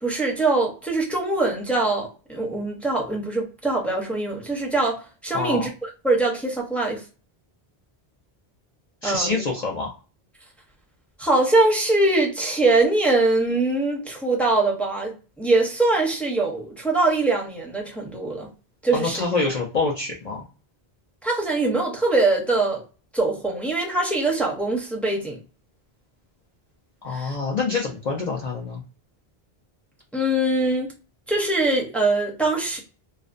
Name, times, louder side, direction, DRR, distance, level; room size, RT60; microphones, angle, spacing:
voice 1, 0.0-7.0 9.0-9.4 11.2-18.5 18.8-19.2 21.2-22.8 23.1-25.4 27.1-27.3 30.1-30.9 31.3-32.8, right 2 dB, ahead, 0.5 m, -23 dB
voice 2, 5.3-5.7 9.0-9.9 18.9-20.4 27.0-28.8, left 3 dB, 55° left, 0.5 m, -26 dB
2.4 x 2.1 x 2.4 m
omnidirectional pair, 1.0 m